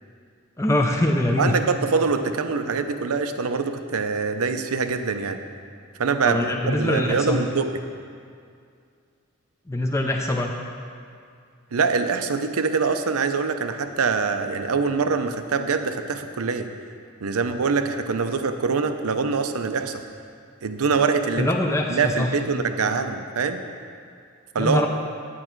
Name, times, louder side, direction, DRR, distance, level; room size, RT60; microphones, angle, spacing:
voice 1, 0.6-1.6 6.3-7.4 9.7-10.5 21.4-22.3 22.8-23.0 24.6-24.9, left 1 dB, 15° left, 1 dB, 0.5 m, -23 dB
voice 2, 1.4-5.4 6.0-7.7 11.7-16.7 17.2-20.0 20.6-21.5 21.9-23.6 24.5-24.9, right 5 dB, 80° right, 8 dB, 0.6 m, -24 dB
9.5 x 8.7 x 4.5 m, 2.3 s
head